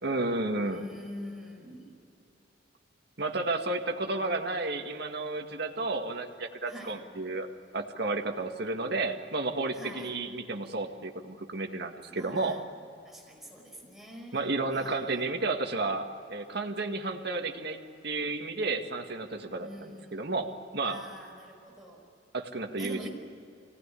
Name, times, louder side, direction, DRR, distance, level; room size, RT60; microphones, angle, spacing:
voice 1, 0.0-0.9 3.2-7.5 7.7-12.6 14.3-21.0 22.3-23.1, right 2 dB, 60° right, 4 dB, 1.9 m, -32 dB
voice 2, 0.6-1.9 6.7-7.0 9.7-10.1 12.1-12.6 13.0-15.0 19.6-20.3 20.8-22.0 22.8-23.1, equal, ahead, -2 dB, 5.0 m, -45 dB
25.0 x 18.5 x 10.0 m, 2.5 s
head